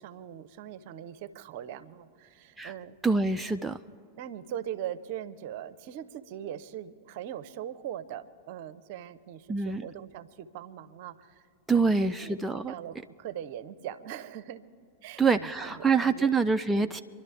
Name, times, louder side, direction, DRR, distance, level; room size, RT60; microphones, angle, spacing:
voice 1, 0.0-3.0 3.5-3.6 4.2-11.5 11.7-14.6 15.0-16.3 16.7-17.0, right 10 dB, 50° right, 13 dB, 0.7 m, -41 dB
voice 2, 3.0-3.8 9.5-9.8 11.7-12.7 15.2-17.0, right 4 dB, 5° right, 6 dB, 0.4 m, -25 dB
27.0 x 11.5 x 3.4 m, 2.6 s
figure-of-eight pair, 90°, 0 cm